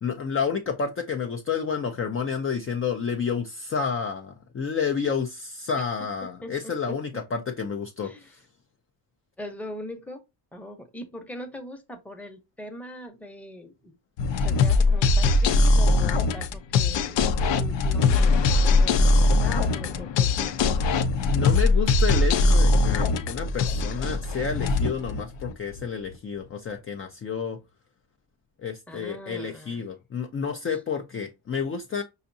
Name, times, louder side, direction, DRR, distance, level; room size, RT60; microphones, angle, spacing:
voice 1, 0.0-8.4 21.3-27.6 28.6-32.0, left 6 dB, 30° left, 0.5 m, -30 dB
voice 2, 6.4-7.0 8.0-8.4 9.4-10.2 10.5-14.0 14.4-20.6 28.9-29.9 30.7-30.8, left 1 dB, 5° left, 0.8 m, -41 dB
sound 1, 14.2-25.8, left 3 dB, 65° left, 0.7 m, -21 dB
5.7 x 2.6 x 2.7 m
cardioid pair, 125°, 46 cm